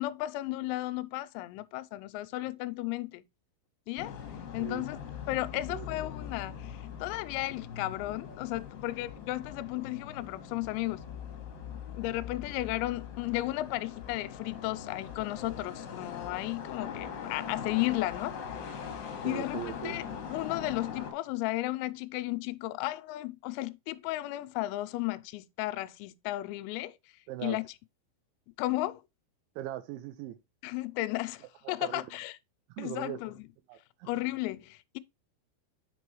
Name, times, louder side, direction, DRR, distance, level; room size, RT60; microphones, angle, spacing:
voice 1, 0.0-3.2 3.9-4.2 4.5-5.0 5.3-11.0 11.9-20.1 20.3-27.0 27.4-27.7 28.6-29.0 30.6-32.4 32.8-33.5 34.1-35.0, left 17 dB, 90° left, 3.3 m, -34 dB
sound 1, 4.0-21.1, left 7 dB, 55° left, 2.7 m, -42 dB
voice 2, 4.6-4.9 5.7-5.9 19.2-20.0 27.3-27.6 29.6-30.4 31.8-32.0 32.7-33.2 33.7-34.1, right 13 dB, 80° right, 3.0 m, -39 dB
7.4 x 6.1 x 3.1 m
omnidirectional pair, 6.0 m